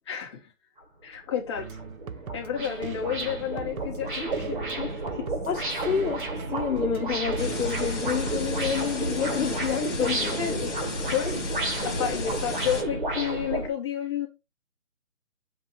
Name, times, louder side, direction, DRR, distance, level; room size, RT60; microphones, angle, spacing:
voice 1, 0.1-0.4 1.0-1.7 2.3-5.2 10.4-10.7 11.1-11.3 11.8-14.3, left 8 dB, 20° left, 1.6 m, -31 dB
sound 1, 0.8-0.9 1.3-13.7, right 2 dB, 35° right, 1.4 m, -32 dB
sound 2, 1.6-8.6, right 6 dB, 80° right, 0.8 m, -41 dB
voice 2, 5.5-10.6, left 7 dB, 70° left, 0.9 m, -29 dB
sound 3, 7.4-12.8, left 3 dB, 55° left, 1.8 m, -34 dB
7.9 x 2.8 x 5.6 m
hypercardioid pair, 175°, 42 cm